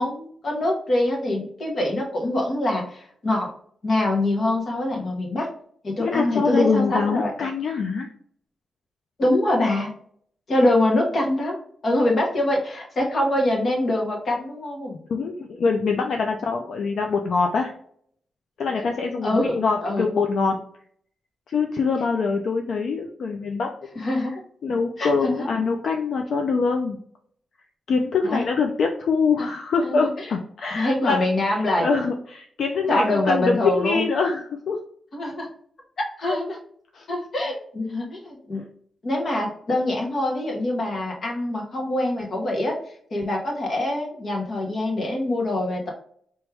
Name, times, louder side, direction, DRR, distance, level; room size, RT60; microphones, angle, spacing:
voice 1, 0.0-3.5 3.8-5.5 5.8-7.3 9.2-9.9 10.5-11.6 11.8-15.0 19.2-20.1 23.9-24.3 25.0-25.5 28.2-28.4 29.8-30.1 30.7-31.9 32.9-34.0 35.1-35.5 36.0-36.6 37.1-38.6 39.0-45.9, left 1 dB, 45° left, 0 dB, 1.3 m, -24 dB
voice 2, 6.0-8.1 15.1-17.7 18.6-20.6 21.5-23.7 24.0-24.3 24.6-27.0 27.9-34.8 36.2-36.4 36.9-37.1, left 4 dB, 70° left, 3 dB, 0.5 m, -24 dB
4.7 x 3.0 x 3.4 m, 0.62 s
wide cardioid pair, 150°, 0 cm